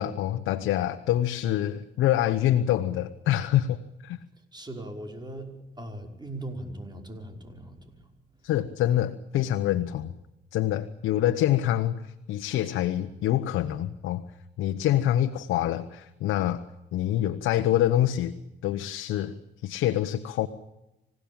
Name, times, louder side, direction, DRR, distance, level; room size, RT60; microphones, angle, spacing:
voice 1, 0.0-4.2 8.4-10.1 10.5-14.2 14.6-16.6 16.9-18.3 18.6-20.5, left 12 dB, 90° left, 7 dB, 1.1 m, -26 dB
voice 2, 4.5-8.1, right 1 dB, 20° right, 5 dB, 5.4 m, -39 dB
26.5 x 17.0 x 8.8 m, 0.92 s
cardioid pair, 90°, 20 cm